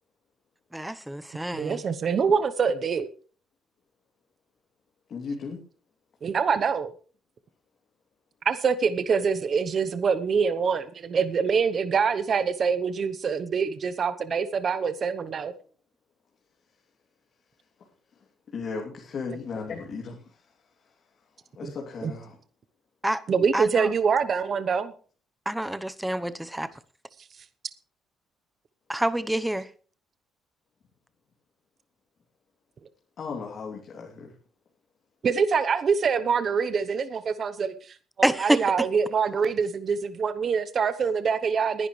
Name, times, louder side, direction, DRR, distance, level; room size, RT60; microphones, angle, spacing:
voice 1, 0.7-1.8 23.0-23.2 23.5-23.9 25.5-26.7 28.9-29.7 38.2-38.9, right 1 dB, 5° right, 0.9 m, -27 dB
voice 2, 1.5-3.1 6.2-6.9 8.4-15.5 21.6-21.7 22.0-22.1 23.3-24.9 35.2-41.9, right 6 dB, 40° right, 0.9 m, -25 dB
voice 3, 5.1-5.6 17.8-17.9 18.5-20.5 20.8-20.9 21.5-22.4 33.2-34.3, left 4 dB, 45° left, 2.9 m, -36 dB
20.5 x 11.0 x 3.2 m
cardioid pair, 140°, 0 cm